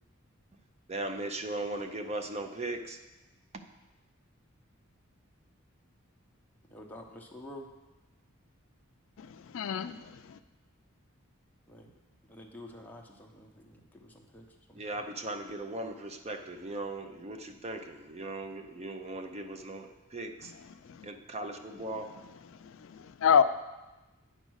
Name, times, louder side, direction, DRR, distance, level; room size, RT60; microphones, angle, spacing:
voice 1, 0.9-3.0 14.7-20.5 21.0-22.1, right 2 dB, 30° right, 0.5 m, -38 dB
voice 2, 6.7-7.7 11.7-11.9 12.3-14.8, left 1 dB, 10° left, 0.8 m, -49 dB
voice 3, 9.2-10.4 20.8-21.1 22.5-23.4, left 7 dB, 60° left, 0.3 m, -28 dB
8.9 x 5.2 x 6.3 m
head